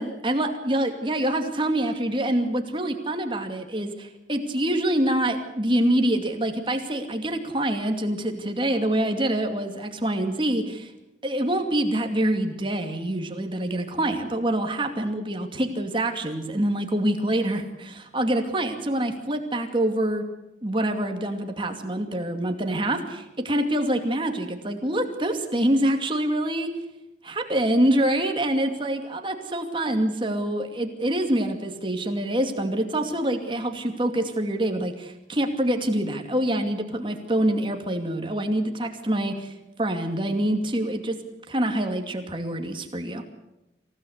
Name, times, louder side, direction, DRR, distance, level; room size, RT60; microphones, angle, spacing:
voice 1, 0.0-10.9 11.2-20.2 20.6-26.7 27.2-39.5 39.8-41.2 41.5-43.2, right 1 dB, 25° right, 5 dB, 2.5 m, -25 dB
27.0 x 16.5 x 8.1 m, 0.94 s
head